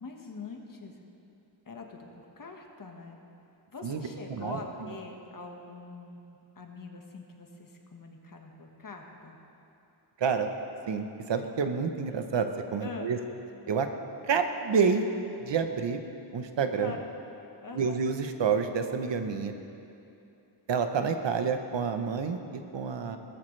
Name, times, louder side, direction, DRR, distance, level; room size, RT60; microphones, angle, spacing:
voice 1, 0.0-1.0 1.6-3.2 3.7-9.4 12.8-13.1 16.7-17.0 17.6-18.0, left 3 dB, 45° left, 1 dB, 1.6 m, -43 dB
voice 2, 10.2-10.5 10.9-13.2 13.7-13.9 14.3-15.0 15.4-16.0 16.3-16.9 17.7-19.5 20.7-23.2, right 6 dB, 70° right, 7 dB, 1.0 m, -28 dB
19.0 x 14.0 x 3.3 m, 2.8 s
wide cardioid pair, 105°, 46 cm